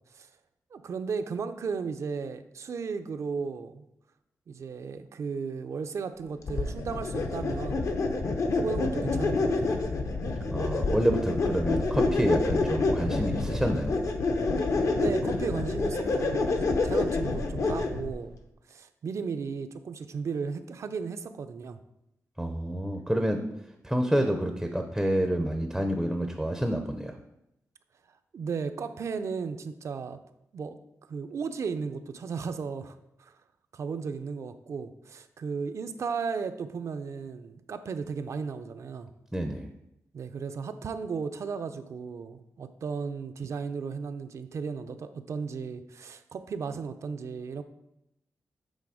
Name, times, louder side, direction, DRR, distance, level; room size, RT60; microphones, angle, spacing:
voice 1, 0.7-3.9 4.5-9.7 14.9-18.4 18.7-21.8 28.3-30.2 30.5-30.8 31.1-33.3 33.7-39.1 40.1-47.6, right 5 dB, 55° right, 9 dB, 0.4 m, -35 dB
sound 1, 6.5-18.1, left 3 dB, 60° left, 0.7 m, -28 dB
voice 2, 10.5-13.9 22.4-23.4 23.8-27.2 39.3-39.7, right 1 dB, 5° right, 4 dB, 0.5 m, -28 dB
8.3 x 3.8 x 4.9 m, 0.83 s
wide cardioid pair, 170°, 6 cm